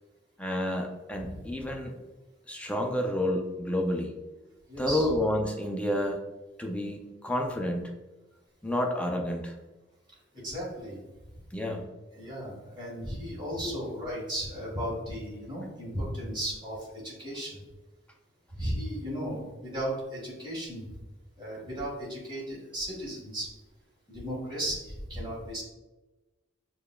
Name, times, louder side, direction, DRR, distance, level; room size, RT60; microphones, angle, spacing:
voice 1, 0.4-1.9 2.5-4.1 4.8-6.2 6.6-7.9 8.6-9.5 11.5-11.9 13.6-13.7, left 1 dB, 5° left, 1 dB, 0.4 m, -30 dB
voice 2, 4.7-5.1 10.1-11.0 11.3-11.4 12.1-17.6 18.5-21.0 21.4-23.5 24.1-25.6, equal, 25° right, -5 dB, 1.5 m, -35 dB
6.7 x 2.3 x 2.2 m, 1.1 s
head